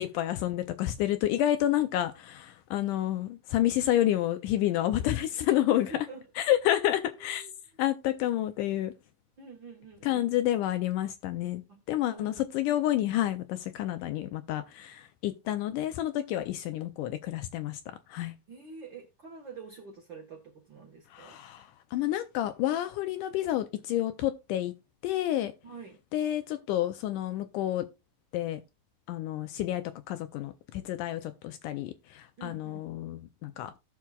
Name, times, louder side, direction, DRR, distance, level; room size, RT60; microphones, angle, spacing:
voice 1, 0.0-5.9 6.4-7.5 7.8-8.9 10.0-11.6 11.9-17.8 18.1-18.3 21.1-24.7 25.0-25.5 26.1-27.8 28.3-28.6 29.1-33.7, left 13 dB, 80° left, 1.9 m, -29 dB
voice 2, 5.7-6.3 7.0-7.5 8.2-8.3 9.4-10.3 11.7-11.8 12.1-12.4 18.5-21.4 25.6-26.0 32.4-32.8, right 3 dB, 75° right, 1.0 m, -46 dB
17.0 x 5.9 x 2.3 m
omnidirectional pair, 4.2 m